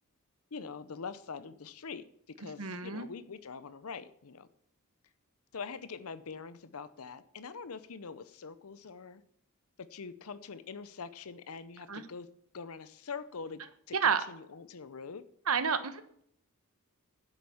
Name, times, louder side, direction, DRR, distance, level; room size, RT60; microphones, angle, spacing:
voice 1, 0.5-2.0 2.4-4.5 5.5-9.2 9.8-12.3 12.5-13.6 13.9-15.2, left 5 dB, 90° left, 14 dB, 0.7 m, -44 dB
voice 2, 2.6-3.1 11.9-12.0 13.9-14.2 15.5-16.2, right 6 dB, 90° right, 11 dB, 1.3 m, -30 dB
10.5 x 8.2 x 7.0 m, 0.69 s
head